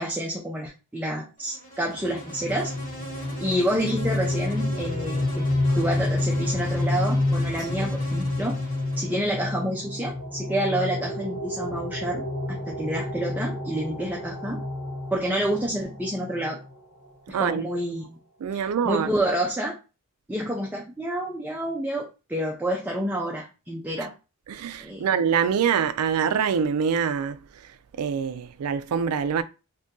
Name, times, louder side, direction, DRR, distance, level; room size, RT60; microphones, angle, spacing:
voice 1, 0.0-2.7 3.4-5.5 5.8-8.6 9.0-12.2 12.7-14.6 15.1-16.6 17.3-18.0 18.5-19.8 20.3-24.1 24.8-25.0, right 1 dB, 5° right, 0.5 m, -28 dB
Insect, 1.4-9.6, right 1 dB, 40° left, 1.5 m, -41 dB
sound 1, 2.0-16.7, left 2 dB, 75° left, 0.8 m, -29 dB
voice 2, 17.3-17.7 18.4-19.1 24.5-27.4 28.0-29.4, right 7 dB, 80° right, 0.4 m, -25 dB
2.7 x 2.6 x 3.6 m
head